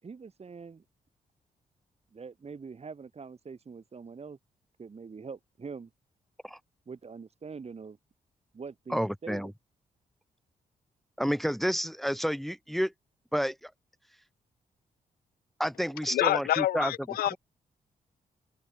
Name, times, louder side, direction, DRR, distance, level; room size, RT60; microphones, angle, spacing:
voice 1, 0.0-0.8 2.1-4.4 4.8-5.9 6.9-8.0 8.5-9.5, right 5 dB, 45° right, 3.9 m, -44 dB
voice 2, 8.9-9.5 11.2-12.9 13.3-13.7 15.6-16.9, equal, ahead, 1.5 m, -30 dB
voice 3, 16.1-17.4, left 14 dB, 90° left, 1.3 m, -27 dB
open air
cardioid pair, 65°, 15 cm